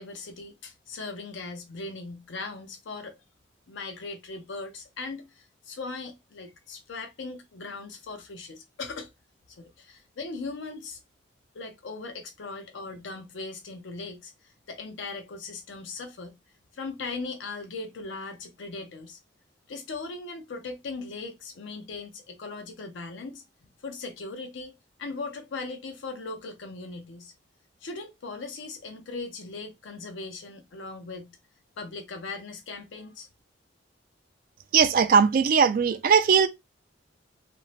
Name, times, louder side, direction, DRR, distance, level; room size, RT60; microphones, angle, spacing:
voice 1, 0.0-3.2 3.7-9.1 9.6-11.0 11.5-16.4 16.7-19.2 19.7-23.4 23.8-27.3 27.8-31.3 31.8-33.3, left 3 dB, 75° left, 0.5 m, -39 dB
voice 2, 34.7-36.5, right 6 dB, 45° right, 0.3 m, -19 dB
2.5 x 2.0 x 3.1 m
head